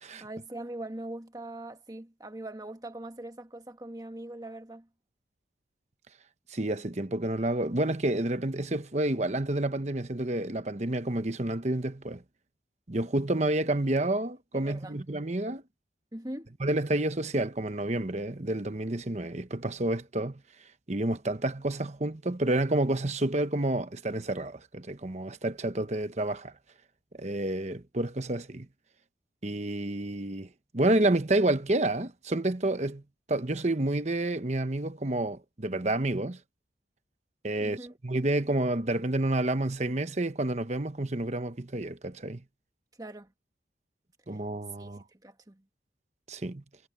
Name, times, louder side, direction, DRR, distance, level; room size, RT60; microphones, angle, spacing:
voice 1, 0.2-4.9 14.5-14.9 16.1-16.5 37.6-37.9 43.0-43.3 44.3-44.4 44.8-45.6, right 1 dB, 20° right, 1.6 m, -41 dB
voice 2, 6.5-12.2 12.9-15.6 16.6-20.4 20.9-26.5 27.1-28.7 29.4-33.0 33.3-36.4 37.4-37.8 38.0-42.4 44.3-45.0 46.3-46.6, right 1 dB, 40° right, 1.1 m, -29 dB
head